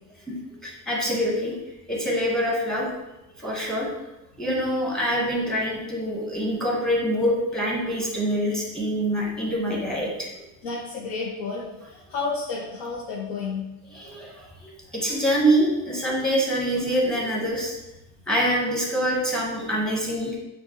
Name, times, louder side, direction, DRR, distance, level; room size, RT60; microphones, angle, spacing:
voice 1, 0.6-1.5 1.9-2.9 3.4-3.9 4.4-10.3 13.9-17.8 18.3-20.4, equal, ahead, -3 dB, 1.2 m, -25 dB
voice 2, 10.6-13.7, left 4 dB, 75° left, -7 dB, 1.2 m, -31 dB
6.3 x 2.6 x 3.0 m, 0.98 s
cardioid pair, 120°, 40 cm